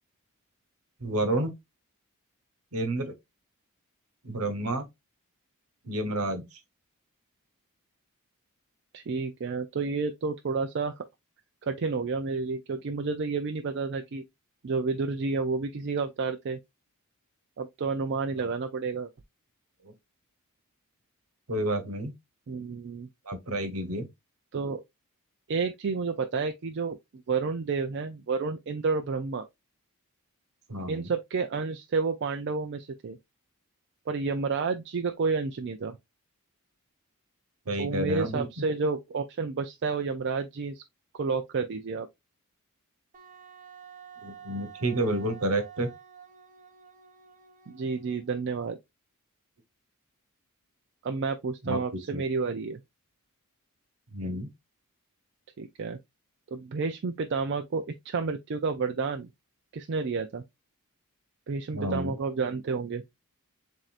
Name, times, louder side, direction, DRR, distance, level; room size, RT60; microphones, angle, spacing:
voice 1, 1.0-1.5 2.7-3.1 4.2-4.9 5.8-6.4 21.5-22.1 23.3-24.1 30.7-31.1 37.7-38.5 44.2-45.9 51.6-51.8 52.1-52.2 54.1-54.5 61.7-62.1, right 1 dB, 70° right, 1.2 m, -30 dB
voice 2, 8.9-11.0 11.6-14.2 14.6-16.6 17.6-19.1 22.5-23.1 24.5-24.8 25.5-27.0 27.3-29.5 30.9-33.2 34.1-36.0 37.8-40.8 41.1-42.1 47.7-48.8 51.0-52.8 55.6-56.0 56.5-59.3 59.7-60.4 61.5-63.0, right 4 dB, 50° right, 0.4 m, -30 dB
Wind instrument woodwind instrument, 43.1-48.6, right 8 dB, 35° right, 0.8 m, -50 dB
7.4 x 2.7 x 2.4 m
head